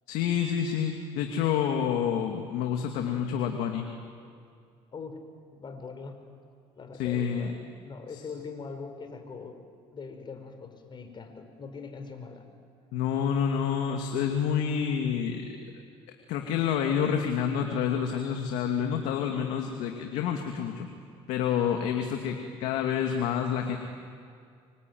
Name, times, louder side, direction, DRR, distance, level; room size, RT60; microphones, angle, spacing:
voice 1, 0.1-3.9 7.0-7.5 8.1-8.2 12.9-15.6 16.3-20.9 21.3-23.8, left 8 dB, 80° left, 3 dB, 2.4 m, -28 dB
voice 2, 5.5-6.2 6.7-9.6 9.9-12.4 22.2-22.4, left 5 dB, 40° left, 7 dB, 4.9 m, -42 dB
26.5 x 24.0 x 9.5 m, 2.3 s
supercardioid pair, 85°, 12 cm